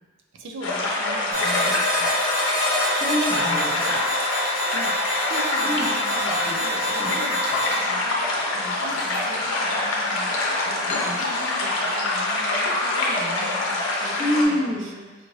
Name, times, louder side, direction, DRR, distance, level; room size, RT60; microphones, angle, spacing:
voice 1, 0.3-2.1 4.7-15.3, right 1 dB, 60° right, 2 dB, 0.5 m, -40 dB
sound 1, 0.6-14.4, left 2 dB, 65° left, 0.7 m, -25 dB
sound 2, 1.3-7.8, left 1 dB, 85° right, 1.2 m, -27 dB
voice 2, 2.9-4.0 5.6-5.8 6.4-6.6 7.0-7.1 14.2-14.9, equal, ahead, -8 dB, 0.7 m, -26 dB
Chirp tweet, 6.7-11.8, left 2 dB, 35° left, 0.4 m, -40 dB
4.9 x 2.5 x 3.1 m, 1.3 s
head